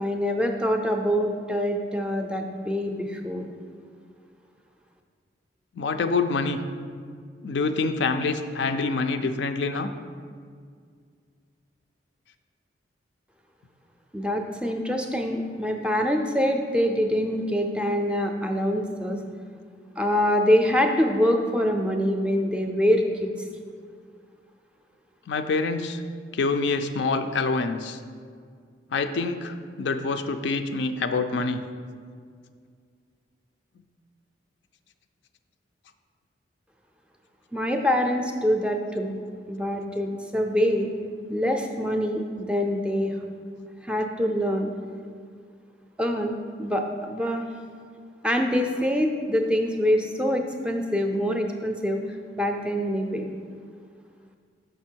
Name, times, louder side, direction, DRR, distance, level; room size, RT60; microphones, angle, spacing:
voice 1, 0.0-3.5 14.1-19.2 20.0-23.3 37.5-39.2 39.5-40.9 41.3-43.1 43.8-44.7 46.0-47.5 48.2-52.0 52.4-53.3, equal, 5° right, 3 dB, 0.4 m, -25 dB
voice 2, 5.8-6.6 7.4-9.9 25.3-26.0 26.3-28.0 28.9-31.6, left 4 dB, 75° left, 8 dB, 0.4 m, -26 dB
6.5 x 5.3 x 4.5 m, 2.1 s
head